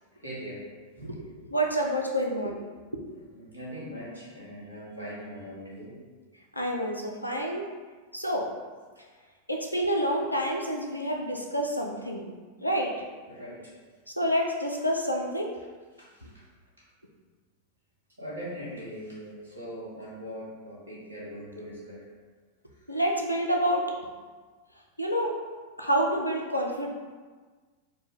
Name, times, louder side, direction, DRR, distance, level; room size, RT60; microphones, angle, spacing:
voice 1, 0.2-0.7 0.9-1.2 3.3-6.0 13.3-13.6 16.0-16.3 18.2-22.0, equal, 75° right, -8 dB, 1.5 m, -41 dB
voice 2, 1.0-2.6 2.9-3.0 6.5-7.7 8.1-8.5 9.5-12.3 12.6-12.9 14.2-15.5 16.2-16.3 22.9-23.9 25.0-25.3 25.8-26.9, equal, 85° left, 0 dB, 0.5 m, -28 dB
4.2 x 2.2 x 3.6 m, 1.4 s
figure-of-eight pair, 90°, 0 cm